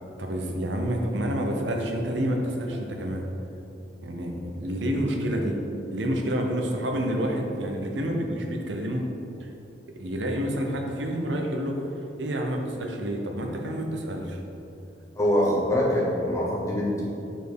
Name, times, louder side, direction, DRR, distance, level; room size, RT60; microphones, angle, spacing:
voice 1, 0.2-3.3 4.0-5.6 5.9-9.0 9.4-9.5 10.0-11.8 12.2-14.4, equal, 80° right, 2 dB, 0.8 m, -28 dB
voice 2, 15.1-17.1, left 1 dB, 15° left, -4 dB, 0.9 m, -24 dB
5.1 x 4.5 x 4.6 m, 2.7 s
head